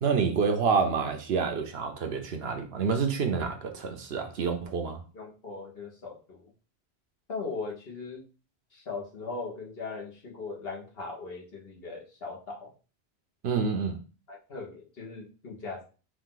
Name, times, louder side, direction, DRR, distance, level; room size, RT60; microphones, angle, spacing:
voice 1, 0.0-5.0 13.4-14.0, right 5 dB, 75° right, 1.0 m, -28 dB
voice 2, 5.1-6.5 7.3-8.2 8.7-12.7 14.3-15.8, left 4 dB, 65° left, 1.5 m, -39 dB
4.9 x 2.7 x 3.8 m
omnidirectional pair, 1.1 m